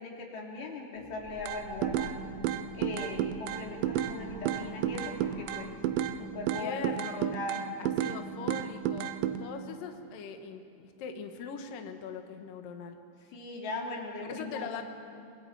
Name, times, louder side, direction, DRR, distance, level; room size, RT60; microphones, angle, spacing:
voice 1, 0.0-2.2 2.7-5.8 6.2-7.1 7.3-7.6 7.9-8.3 13.3-14.8, left 2 dB, 60° left, -1 dB, 4.4 m, -39 dB
sound 1, 0.9-6.3, equal, 20° left, 3.9 m, -50 dB
sound 2, 1.5-2.1 2.4-4.2 4.5-6.2 6.5-8.2 8.5-9.4, right 11 dB, 85° right, 2.5 m, -31 dB
voice 2, 6.5-7.3 7.8-9.1 9.4-13.0 14.3-14.8, left 6 dB, 85° left, 5 dB, 1.9 m, -41 dB
25.5 x 23.5 x 4.7 m, 2.5 s
omnidirectional pair, 5.9 m